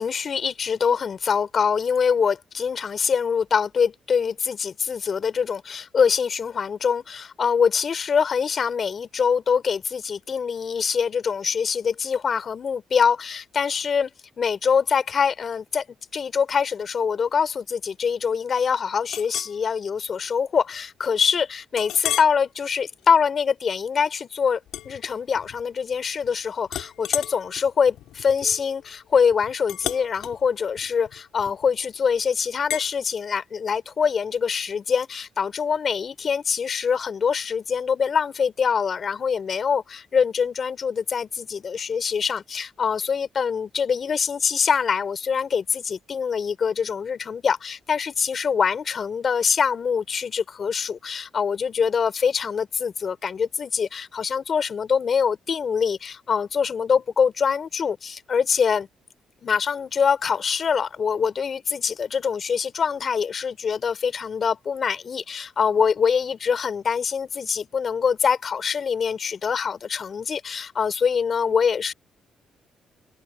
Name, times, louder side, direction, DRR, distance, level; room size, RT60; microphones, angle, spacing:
voice 1, 0.0-15.8 16.1-24.6 24.8-58.9 59.4-71.9, left 6 dB, 45° left, 4.1 m, -24 dB
Chink clink, 19.1-19.6 20.1-20.3 20.7-20.8 21.8-22.4 22.9-23.2 24.7-25.6 25.9-26.3 26.7-31.8 32.7-32.9, left 13 dB, 85° left, 4.2 m, -33 dB
open air
cardioid pair, 90°, 0 cm